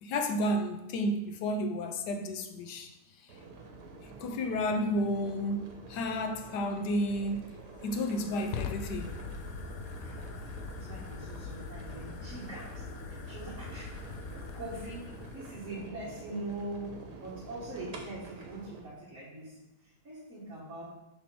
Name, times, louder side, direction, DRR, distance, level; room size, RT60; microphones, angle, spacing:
voice 1, 0.0-2.9 4.2-7.5 7.8-9.2, equal, 90° left, 1.3 m, -31 dB
sound 1, 3.3-18.8, right 3 dB, 80° right, 1.6 m, -48 dB
Fire, 7.1-15.9, left 5 dB, 70° left, 1.0 m, -42 dB
voice 2, 10.0-14.1 14.5-20.9, right 2 dB, 55° right, 1.9 m, -43 dB
6.7 x 3.4 x 6.0 m
omnidirectional pair, 1.7 m